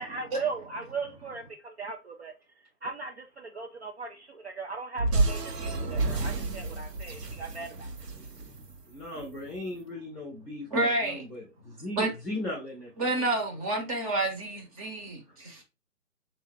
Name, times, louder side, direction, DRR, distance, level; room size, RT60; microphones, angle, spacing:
voice 1, 0.0-7.9, right 4 dB, 45° right, 0.5 m, -38 dB
sound 1, 5.0-9.4, right 3 dB, 90° right, 1.2 m, -30 dB
voice 2, 8.9-13.3, left 2 dB, 5° left, 0.6 m, -38 dB
voice 3, 10.7-11.2 12.0-12.1 13.0-15.6, right 2 dB, 25° right, 0.9 m, -29 dB
3.6 x 2.7 x 3.7 m
figure-of-eight pair, 145°, 47 cm